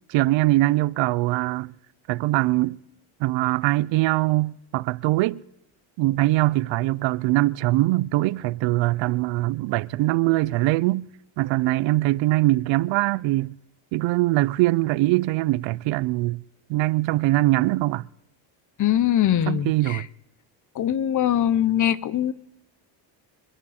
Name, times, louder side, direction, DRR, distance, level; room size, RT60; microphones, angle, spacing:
voice 1, 0.1-1.7 2.1-2.8 3.2-5.4 6.0-11.1 11.4-13.6 13.9-16.4 16.7-18.1 19.5-20.1, right 18 dB, 70° right, 0.6 m, -22 dB
voice 2, 18.8-20.0 20.7-22.3, left 11 dB, 40° left, 0.7 m, -22 dB
26.5 x 11.0 x 4.3 m
cardioid pair, 115°, 47 cm